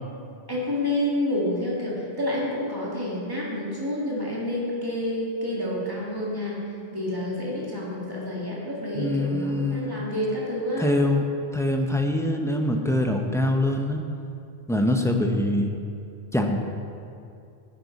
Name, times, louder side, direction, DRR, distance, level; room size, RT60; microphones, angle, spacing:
voice 1, 0.5-6.6 6.9-11.0, left 1 dB, 20° right, -5 dB, 2.1 m, -28 dB
voice 2, 9.0-10.0 10.8-11.2 11.5-14.0 14.7-15.7 16.3-16.6, left 1 dB, 5° left, 3 dB, 0.5 m, -24 dB
10.5 x 9.6 x 4.1 m, 2.5 s
omnidirectional pair, 1.1 m